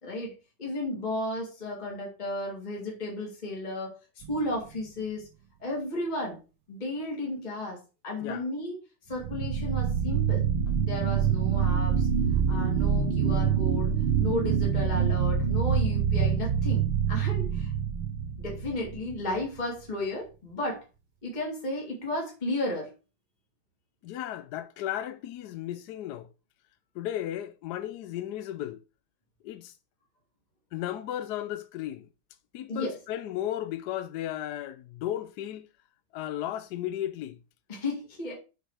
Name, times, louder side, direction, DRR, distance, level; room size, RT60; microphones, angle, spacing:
voice 1, 0.0-5.3 5.6-6.4 6.7-8.8 9.1-10.4 10.8-12.1 12.5-13.9 14.2-17.7 18.4-20.8 21.2-22.9 32.7-32.9 37.7-38.3, left 1 dB, 20° left, 2.1 m, -34 dB
sound 1, 4.2-4.8 9.1-19.3, right 7 dB, 80° right, 1.7 m, -26 dB
voice 2, 24.0-26.3 26.9-28.8 29.4-29.7 30.7-32.1 32.5-35.7 36.1-37.4, left 12 dB, 75° left, 1.0 m, -35 dB
6.6 x 5.1 x 4.8 m
omnidirectional pair, 2.2 m